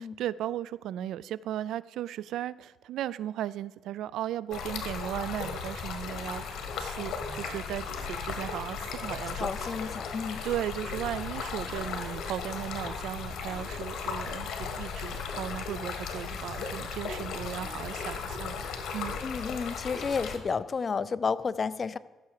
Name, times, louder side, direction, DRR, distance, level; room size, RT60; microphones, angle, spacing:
voice 1, 0.0-6.4 6.8-9.7 10.4-19.2, right 12 dB, 80° right, 20 dB, 0.3 m, -36 dB
Stream, 4.5-20.4, left 6 dB, 75° left, 1.6 m, -36 dB
sound 1, 4.6-19.4, right 3 dB, 45° right, 3.5 m, -51 dB
voice 2, 9.4-10.4 19.2-22.0, left 5 dB, 40° left, 16 dB, 0.5 m, -31 dB
14.5 x 6.8 x 4.8 m, 1.3 s
cardioid pair, 90°, 0 cm